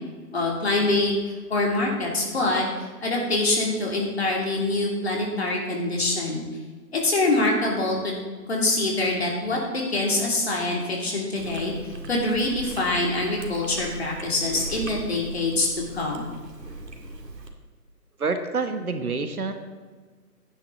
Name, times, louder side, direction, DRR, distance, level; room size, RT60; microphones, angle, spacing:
voice 1, 0.3-2.6 3.0-6.4 6.9-8.1 8.5-15.7 15.9-16.2, left 2 dB, 40° left, -2 dB, 2.9 m, -25 dB
Chewing mastication, 11.4-17.5, right 1 dB, 85° right, 2.3 m, -39 dB
voice 2, 18.2-19.5, right 4 dB, 65° right, 7 dB, 1.4 m, -27 dB
13.5 x 10.0 x 4.0 m, 1.4 s
figure-of-eight pair, 170°, 48 cm